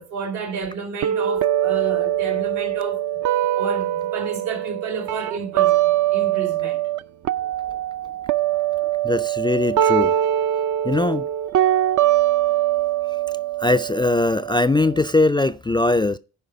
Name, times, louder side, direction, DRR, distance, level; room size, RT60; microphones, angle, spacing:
voice 1, 0.0-3.2 3.5-5.8 6.1-6.8 8.5-8.6, right 5 dB, 85° right, 2.4 m, -31 dB
sound 1, 1.0-7.0 7.2-15.0, right 12 dB, 45° right, 0.5 m, -22 dB
voice 2, 9.0-10.1 10.8-11.3 13.6-16.2, left 2 dB, 10° left, 0.3 m, -20 dB
10.0 x 4.9 x 4.6 m
hypercardioid pair, 50°, 43 cm